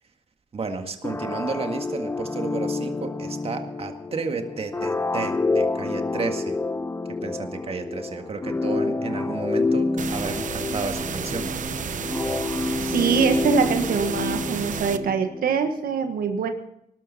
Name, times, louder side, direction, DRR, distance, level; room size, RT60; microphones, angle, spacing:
voice 1, 0.5-6.6 7.2-11.7, right 4 dB, 40° right, 5 dB, 1.9 m, -32 dB
sound 1, 1.0-15.6, left 3 dB, 15° left, 0.6 m, -28 dB
sound 2, 10.0-15.0, right 7 dB, 60° right, 0.9 m, -32 dB
voice 2, 12.8-16.5, right 6 dB, 90° right, 6 dB, 1.4 m, -24 dB
19.0 x 12.5 x 4.2 m, 0.78 s
cardioid pair, 110°, 15 cm